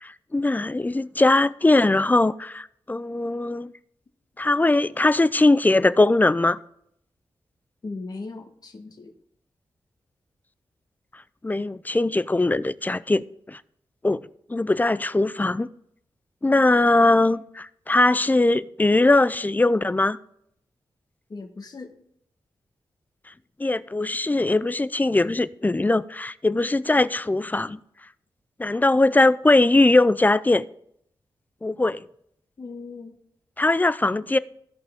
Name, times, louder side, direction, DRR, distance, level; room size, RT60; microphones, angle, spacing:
voice 1, 0.0-3.7 4.4-6.6 11.4-13.6 14.0-14.2 14.5-15.7 16.4-20.2 23.6-27.8 28.6-30.6 31.6-32.0 33.6-34.4, left 2 dB, 20° left, 0.5 m, -20 dB
voice 2, 7.8-9.1 21.3-21.9 32.6-33.2, left 3 dB, 45° left, 1.4 m, -37 dB
16.0 x 5.7 x 3.6 m
cardioid pair, 65°, 9 cm